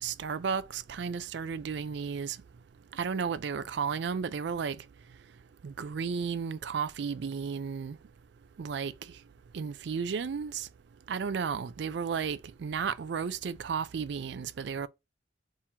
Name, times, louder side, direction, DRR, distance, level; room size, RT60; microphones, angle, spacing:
voice 1, 0.0-2.4 2.9-4.8 5.6-8.0 8.6-8.9 9.5-10.7 11.1-14.9, right 6 dB, 60° right, 0.4 m, -33 dB
4.3 x 3.7 x 2.8 m
head